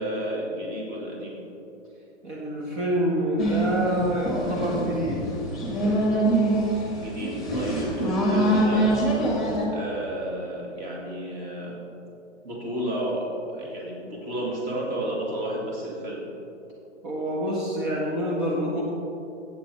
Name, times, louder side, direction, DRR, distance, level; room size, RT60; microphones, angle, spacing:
voice 1, 0.0-1.4 6.9-8.9 9.6-11.8 12.4-16.3, right 1 dB, 25° right, -3 dB, 2.3 m, -32 dB
voice 2, 2.2-5.2 17.0-18.8, equal, 40° right, -4 dB, 1.9 m, -26 dB
sound 1, 3.4-9.7, right 1 dB, ahead, 1.8 m, -25 dB
14.0 x 8.4 x 3.4 m, 2.9 s
hypercardioid pair, 130°, 36 cm